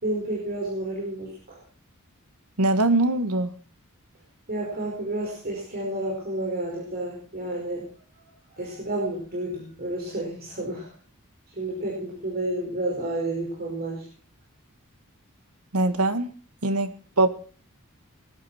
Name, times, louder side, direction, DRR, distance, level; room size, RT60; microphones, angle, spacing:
voice 1, 0.0-1.6 4.5-7.9 8.5-10.9 11.5-14.1, right 1 dB, 45° right, -3 dB, 5.2 m, -30 dB
voice 2, 2.6-3.5 15.7-16.3 16.6-17.3, right 2 dB, 90° right, 11 dB, 1.7 m, -22 dB
19.5 x 11.5 x 4.4 m, 0.40 s
head